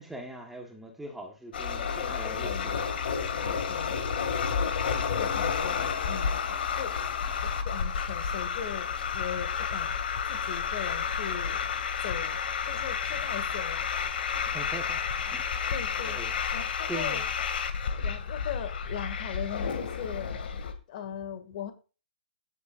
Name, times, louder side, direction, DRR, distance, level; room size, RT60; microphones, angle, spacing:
voice 1, 0.0-2.9 3.5-3.7 14.5-15.5 16.0-16.3 16.9-17.2 18.4-18.5, right 2 dB, 5° right, 1.4 m, -42 dB
sound 1, 1.5-20.7, left 6 dB, 65° left, 2.2 m, -31 dB
voice 2, 1.8-2.7 3.4-4.0 4.6-7.0 7.4-9.9 10.3-11.6 12.0-13.9 15.7-16.2 16.5-17.2 18.0-20.3 20.9-21.7, left 9 dB, 45° left, 2.2 m, -39 dB
15.0 x 8.1 x 2.6 m
hypercardioid pair, 150°, 6 cm